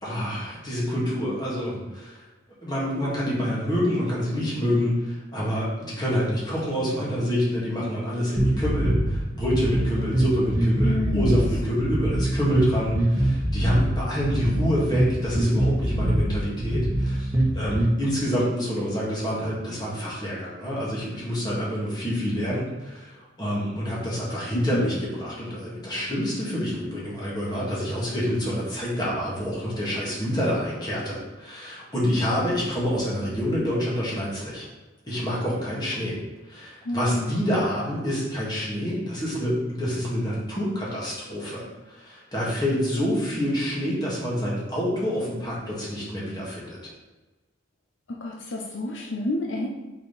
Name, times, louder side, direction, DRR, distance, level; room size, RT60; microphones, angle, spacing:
voice 1, 0.0-2.2 2.6-34.7 35.1-36.2 36.5-46.9, equal, 20° left, -6 dB, 2.1 m, -27 dB
sound 1, 8.4-17.9, right 1 dB, 15° right, 1.3 m, -24 dB
voice 2, 10.8-11.4 24.5-24.9 36.8-37.6 48.1-49.7, left 1 dB, 75° left, -1 dB, 0.8 m, -29 dB
5.5 x 4.8 x 4.2 m, 1.2 s
head